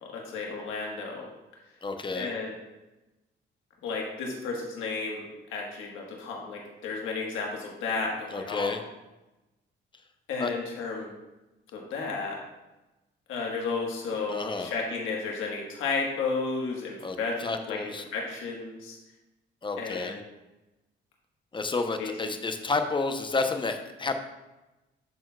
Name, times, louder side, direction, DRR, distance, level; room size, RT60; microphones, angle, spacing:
voice 1, 0.0-1.3 2.1-2.6 3.8-8.7 10.3-11.1 11.7-12.4 13.3-19.0 19.8-20.2 22.0-22.3, left 4 dB, 85° left, -1 dB, 1.4 m, -33 dB
voice 2, 1.8-2.3 8.3-8.8 10.4-10.5 14.3-14.7 17.0-18.0 19.6-20.2 21.5-24.1, left 3 dB, 25° left, 7 dB, 0.7 m, -30 dB
12.5 x 4.3 x 2.3 m, 1.0 s
cardioid pair, 90°, 20 cm